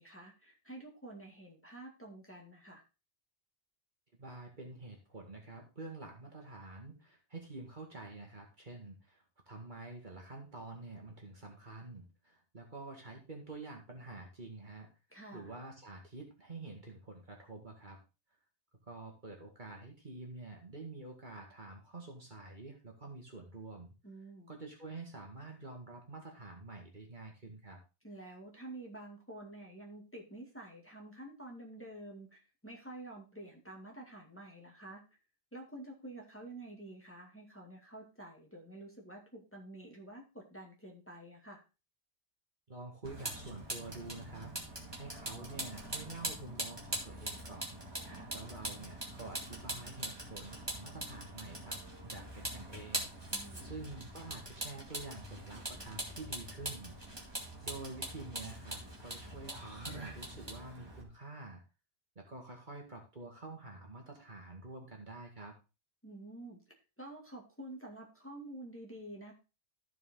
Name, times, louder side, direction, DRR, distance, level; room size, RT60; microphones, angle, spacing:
voice 1, 0.0-2.8 15.1-15.5 24.0-24.5 28.0-35.0 35.5-41.6 48.0-48.3 53.3-53.7 66.0-69.3, right 1 dB, 10° left, -1 dB, 2.2 m, -49 dB
voice 2, 4.1-14.9 15.3-18.0 18.9-23.9 24.5-27.8 42.7-47.8 48.3-56.9 57.6-61.6 62.2-65.6, right 2 dB, 45° right, 1 dB, 1.9 m, -48 dB
Vehicle, 43.0-61.0, right 1 dB, 20° right, 2.3 m, -42 dB
14.0 x 4.9 x 3.8 m, 0.30 s
omnidirectional pair, 1.2 m